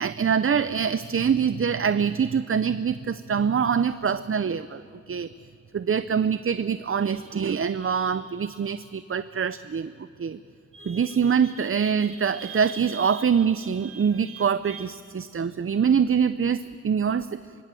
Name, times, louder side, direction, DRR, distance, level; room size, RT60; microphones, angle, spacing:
voice 1, 0.0-5.3 5.7-9.9 10.2-10.4 10.7-17.4, right 7 dB, 50° right, 13 dB, 0.5 m, -24 dB
24.5 x 24.0 x 7.6 m, 2.4 s
wide cardioid pair, 85°, 29 cm